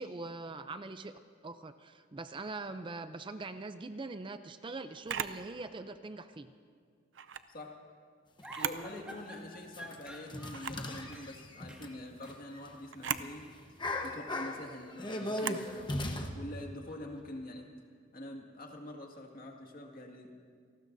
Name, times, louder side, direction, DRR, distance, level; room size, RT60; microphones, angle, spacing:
voice 1, 0.0-6.5, right 3 dB, 25° right, 10 dB, 0.5 m, -42 dB
Camera, 5.1-5.4 7.1-7.5 8.4-8.9 9.3-9.4 10.5-10.9 12.9-13.3 15.3-15.7, right 8 dB, 75° right, 0.6 m, -37 dB
sound 1, 8.4-8.5 9.1-9.2 9.7-12.7 13.0-13.2 13.6-16.3, left 1 dB, 25° left, 1.1 m, -37 dB
sound 2, 8.4-11.3 11.7-11.9 12.2-12.4 13.3-14.5 14.8-17.2, equal, 5° right, 1.9 m, -52 dB
voice 2, 8.6-13.5 14.0-17.7 18.1-20.3, left 1 dB, 50° left, 1 dB, 1.9 m, -45 dB
28.5 x 19.0 x 2.7 m, 2.1 s
head